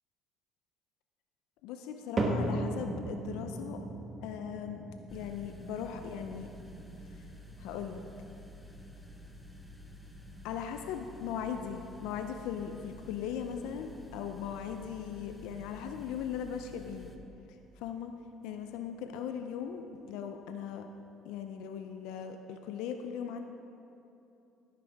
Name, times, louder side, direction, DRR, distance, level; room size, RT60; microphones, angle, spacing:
voice 1, 1.6-3.8 4.2-4.8 5.1-6.5 7.6-8.0 10.4-17.1 17.8-18.1 18.4-20.8 21.3-23.4, left 8 dB, 80° left, 6 dB, 0.5 m, -39 dB
sound 1, 2.2-18.5 18.8-19.3 19.9-20.0 20.8-20.9, right 2 dB, 30° right, 1.3 m, -41 dB
sound 2, 5.1-17.2, left 1 dB, 10° left, 0.9 m, -51 dB
10.5 x 9.9 x 3.5 m, 2.9 s
supercardioid pair, 90°, 0 cm